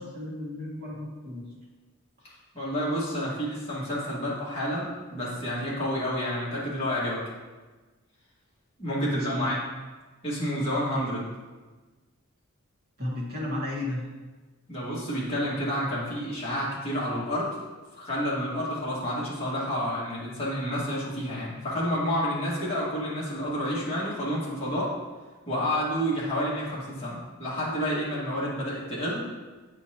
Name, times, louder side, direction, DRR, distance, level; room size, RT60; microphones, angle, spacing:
voice 1, 0.0-1.5 9.1-9.6 13.0-14.0, left 1 dB, 45° right, -6 dB, 1.8 m, -33 dB
voice 2, 2.5-7.2 8.8-9.6 10.2-11.3 14.7-17.5 17.9-24.9 25.5-29.2, equal, 30° left, -8 dB, 2.0 m, -29 dB
8.4 x 4.4 x 3.0 m, 1.3 s
head